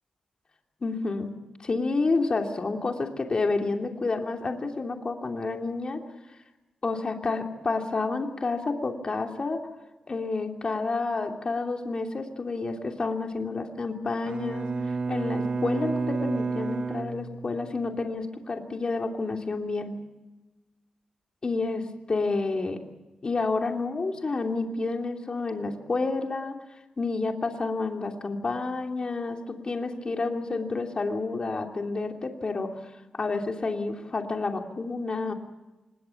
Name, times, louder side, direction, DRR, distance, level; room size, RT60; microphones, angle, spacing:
voice 1, 0.8-1.3 1.6-6.0 6.8-9.6 10.1-20.0 21.4-22.8 23.2-26.6 27.0-32.8 33.1-35.3, left 3 dB, 40° left, 3 dB, 3.0 m, -29 dB
Bowed string instrument, 14.3-17.8, right 4 dB, 50° right, 1.2 m, -30 dB
26.0 x 21.5 x 7.2 m, 1.1 s
wide cardioid pair, 105°, 2 cm